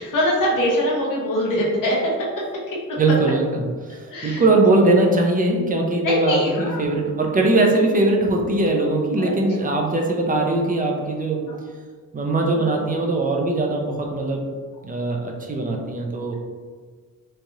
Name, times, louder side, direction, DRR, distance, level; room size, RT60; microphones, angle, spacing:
voice 1, 0.0-2.4 2.9-3.0 4.1-4.4 6.0-7.0 9.2-9.3 11.5-11.6 12.5-12.7, equal, 70° left, -4 dB, 0.8 m, -23 dB
voice 2, 3.0-11.4 12.1-14.5 14.8-16.3, right 2 dB, 25° right, 1 dB, 0.4 m, -21 dB
3.2 x 2.3 x 2.6 m, 1.5 s
wide cardioid pair, 150°, 33 cm